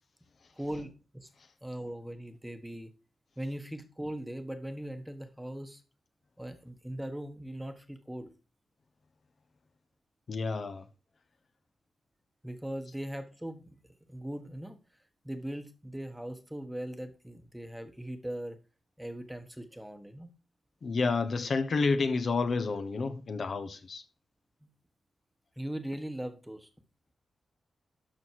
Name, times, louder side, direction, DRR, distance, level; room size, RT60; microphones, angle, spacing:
voice 1, 0.6-1.3 1.6-2.9 3.4-5.8 6.4-8.3 12.4-13.8 14.1-14.8 15.2-18.6 19.0-20.3 24.6-24.7 25.6-26.7, right 1 dB, 5° right, 1.3 m, -39 dB
voice 2, 10.3-10.8 20.8-24.0, left 4 dB, 50° left, 1.1 m, -30 dB
12.0 x 6.4 x 4.7 m
wide cardioid pair, 135°, 0 cm